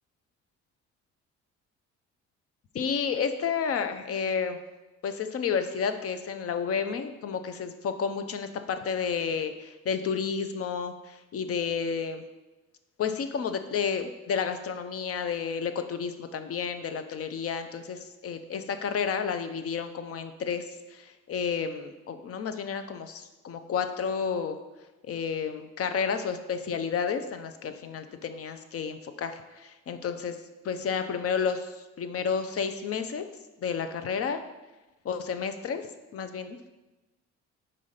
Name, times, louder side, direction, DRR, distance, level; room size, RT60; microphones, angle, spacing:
voice 1, 2.7-4.6 5.0-12.2 13.0-24.6 25.0-30.4 30.6-33.3 33.6-34.4 35.0-35.9 36.1-36.8, left 6 dB, 50° left, 8 dB, 0.6 m, -31 dB
5.0 x 3.9 x 5.6 m, 1.1 s
cardioid pair, 90°, 30 cm